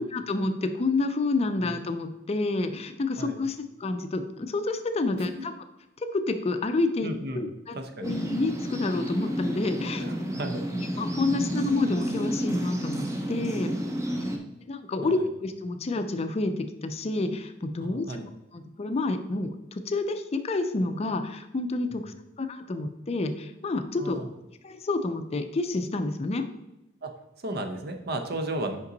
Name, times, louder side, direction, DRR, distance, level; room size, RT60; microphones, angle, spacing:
voice 1, 0.0-5.5 6.0-10.0 10.9-13.7 14.7-24.2 24.6-26.4, left 2 dB, 35° left, 8 dB, 0.4 m, -29 dB
voice 2, 7.0-7.4 7.7-8.1 9.9-10.6 14.2-14.3 15.0-15.1 17.8-18.2 21.9-22.0 24.0-24.3 27.0-27.1 27.4-28.8, right 1 dB, 55° right, 6 dB, 0.7 m, -34 dB
sound 1, 8.0-14.4, equal, 15° right, 0.7 m, -31 dB
5.6 x 5.2 x 3.9 m, 0.88 s
head